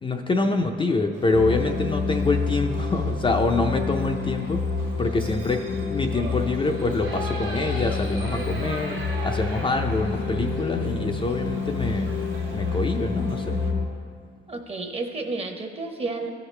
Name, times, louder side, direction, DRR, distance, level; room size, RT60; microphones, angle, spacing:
voice 1, 0.0-4.6 5.0-12.1 12.5-13.6, left 3 dB, 25° left, 3 dB, 0.5 m, -25 dB
Shout / Livestock farm animals working animals, 1.1-13.7, right 3 dB, 75° right, 1.4 m, -42 dB
sound 1, 1.3-13.9, left 4 dB, 75° left, 0.9 m, -28 dB
voice 2, 14.5-16.3, right 3 dB, 30° right, 3 dB, 0.9 m, -31 dB
14.0 x 4.8 x 3.3 m, 2.1 s
cardioid pair, 90°, 20 cm